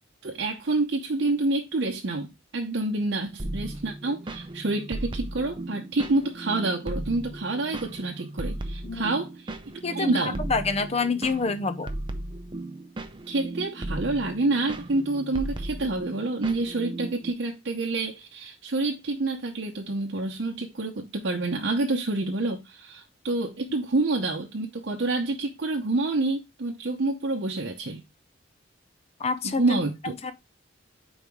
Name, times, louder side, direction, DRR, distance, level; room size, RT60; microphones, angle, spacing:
voice 1, 0.2-2.3 2.5-9.6 9.8-10.4 13.3-28.0 29.4-30.1, right 2 dB, 60° right, 0.8 m, -28 dB
sound 1, 3.4-17.3, right 1 dB, 25° right, 0.6 m, -36 dB
voice 2, 10.4-11.9 29.2-29.8 30.2-30.3, left 4 dB, 35° left, 0.7 m, -27 dB
5.5 x 4.0 x 4.6 m
head